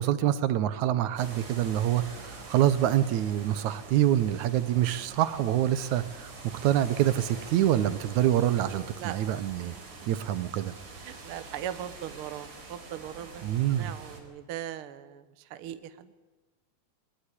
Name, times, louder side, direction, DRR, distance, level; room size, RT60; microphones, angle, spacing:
voice 1, 0.0-6.3 6.6-9.8 10.1-10.7 13.4-13.9, right 12 dB, 70° right, 14 dB, 2.0 m, -26 dB
sound 1, 1.2-14.2, right 3 dB, 50° right, 5.2 m, -45 dB
voice 2, 11.0-13.4 13.8-15.2 15.5-16.1, right 11 dB, 85° right, 12 dB, 1.2 m, -39 dB
21.5 x 20.0 x 10.0 m, 1.2 s
omnidirectional pair, 4.1 m